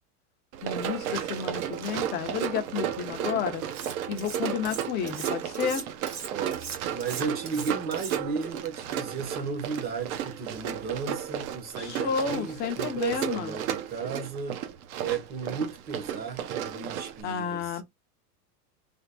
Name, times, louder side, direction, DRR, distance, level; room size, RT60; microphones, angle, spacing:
Run, 0.5-17.2, right 10 dB, 60° right, 0.8 m, -34 dB
voice 1, 0.6-3.6 4.1-5.9 11.8-13.5 17.2-17.8, left 7 dB, 20° left, 0.5 m, -31 dB
Cutlery silverware, 3.7-4.4 4.6-8.5, right 6 dB, 80° right, 2.0 m, -39 dB
voice 2, 6.3-14.6 15.0-17.8, right 5 dB, 20° right, 0.7 m, -34 dB
3.5 x 2.1 x 3.9 m
supercardioid pair, 145°, 47 cm